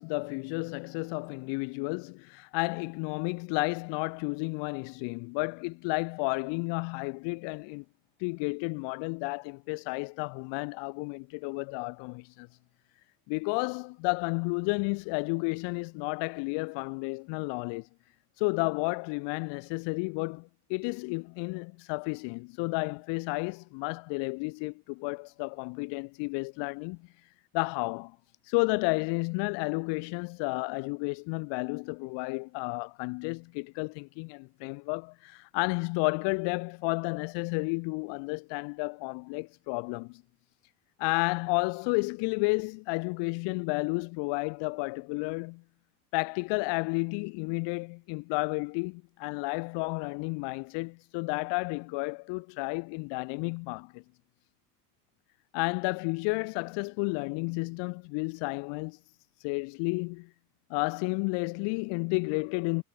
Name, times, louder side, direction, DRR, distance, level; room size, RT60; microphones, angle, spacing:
voice 1, 0.0-7.8 8.2-12.5 13.3-17.9 18.4-27.0 27.5-28.2 28.5-40.2 41.0-45.6 46.1-54.0 55.5-59.0 59.4-60.3 60.7-62.8, left 32 dB, 65° left, 2.1 m, -32 dB
hypercardioid pair, 85°, 47 cm